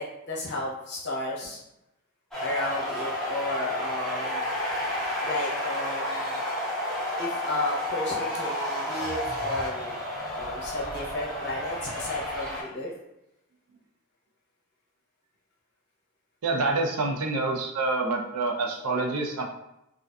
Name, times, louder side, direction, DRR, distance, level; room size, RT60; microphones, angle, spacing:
voice 1, 0.0-1.6 2.4-4.5 5.2-6.4 7.2-10.0 10.3-12.9, left 1 dB, 50° left, -4 dB, 0.7 m, -33 dB
sound 1, 2.3-12.6, left 1 dB, ahead, 0.6 m, -31 dB
voice 2, 16.4-19.4, right 3 dB, 90° right, 1 dB, 0.5 m, -27 dB
2.5 x 2.4 x 2.2 m, 0.87 s
head